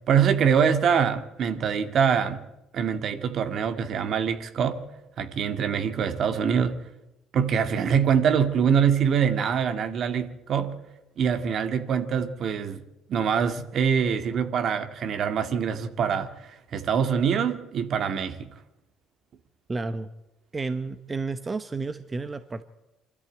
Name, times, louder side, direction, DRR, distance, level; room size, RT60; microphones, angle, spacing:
voice 1, 0.1-2.5 2.7-4.8 5.2-6.8 7.3-10.8 11.2-12.8 13.1-16.3 16.7-18.5, right 7 dB, 55° right, 2.0 m, -24 dB
voice 2, 19.7-20.1 20.5-22.6, right 3 dB, 25° right, 1.0 m, -31 dB
25.0 x 13.5 x 9.0 m
supercardioid pair, 70°, 0 cm